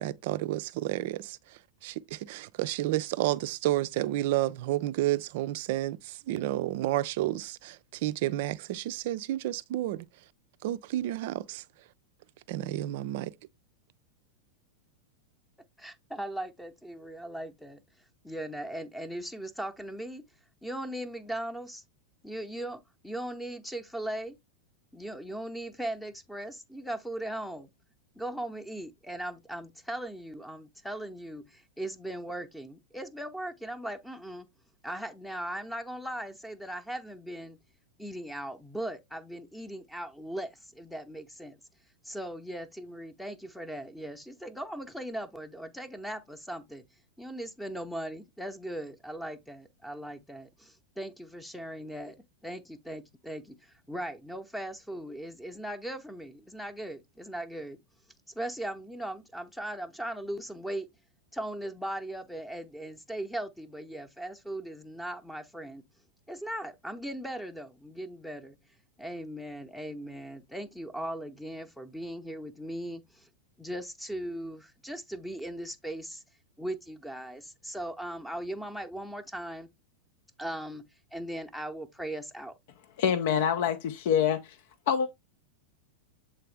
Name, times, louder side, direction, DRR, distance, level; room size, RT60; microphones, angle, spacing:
voice 1, 0.0-10.3 10.6-11.9 12.5-13.4, right 15 dB, 50° right, 0.4 m, -31 dB
voice 2, 15.8-17.8 18.2-20.2 20.6-21.8 22.2-24.4 24.9-27.7 28.1-34.5 34.8-37.6 38.0-41.6 42.0-46.8 47.2-52.2 52.4-57.8 58.3-60.9 61.3-65.8 66.3-68.6 69.0-73.3 73.6-76.2 76.6-79.7 80.4-82.5, right 1 dB, 5° left, 0.8 m, -38 dB
voice 3, 83.0-84.6 84.9-85.1, left 8 dB, 50° left, 0.5 m, -26 dB
7.5 x 3.9 x 3.3 m
figure-of-eight pair, 90°, 0 cm